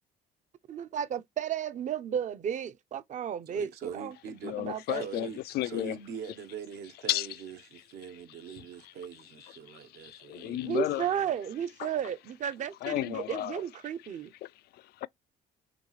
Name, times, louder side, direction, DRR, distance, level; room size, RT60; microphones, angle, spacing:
voice 1, 0.7-4.2 4.5-5.3 10.6-14.3, right 8 dB, 45° right, 0.7 m, -33 dB
voice 2, 3.5-4.6 4.9-11.3, right 7 dB, 75° right, 1.1 m, -43 dB
voice 3, 4.4-5.3 5.5-6.0 7.1-7.3 8.6-8.9 9.7-11.1 11.8-11.9 12.8-13.6 14.4-15.1, left 15 dB, 70° left, 0.4 m, -33 dB
5.0 x 3.2 x 3.2 m
cardioid pair, 110°, 17 cm